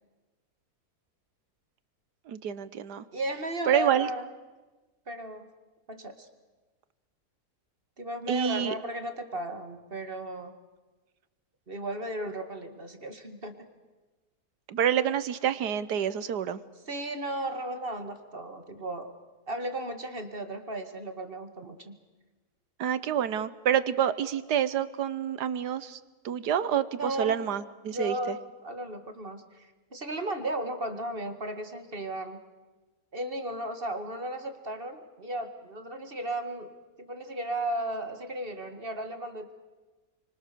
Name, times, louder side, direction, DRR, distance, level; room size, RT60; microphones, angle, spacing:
voice 1, 2.3-3.0 3.7-4.1 8.3-8.7 14.7-16.6 22.8-26.0 26.2-28.4, right 9 dB, 90° right, 14 dB, 1.6 m, -28 dB
voice 2, 3.1-4.3 5.1-5.5 5.9-6.3 8.0-10.6 11.7-13.6 16.9-19.1 19.5-22.0 27.0-27.4 27.9-32.4 33.1-36.7 37.0-39.5, right 1 dB, 35° right, 7 dB, 2.1 m, -35 dB
29.5 x 24.5 x 6.9 m, 1.2 s
omnidirectional pair, 1.7 m